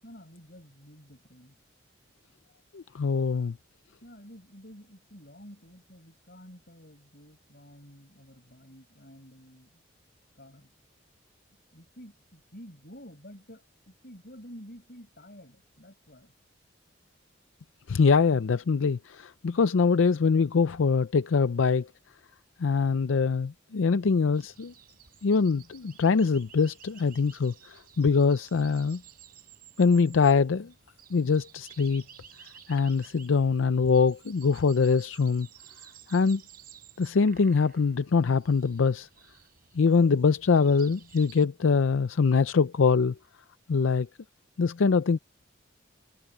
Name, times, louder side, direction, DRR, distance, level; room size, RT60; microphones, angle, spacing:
voice 1, 0.0-1.6 3.3-3.4 4.0-9.8 10.3-10.7 11.7-16.4, equal, 50° left, 7.7 m, -50 dB
voice 2, 2.7-3.6 17.9-21.9 22.6-24.7 25.2-29.0 29.8-30.7 31.1-32.0 32.7-35.5 36.1-36.4 37.0-39.1 39.8-43.1 43.7-44.1 44.6-45.2, left 5 dB, 85° left, 0.5 m, -23 dB
sound 1, 24.3-41.4, right 9 dB, 50° right, 3.5 m, -54 dB
head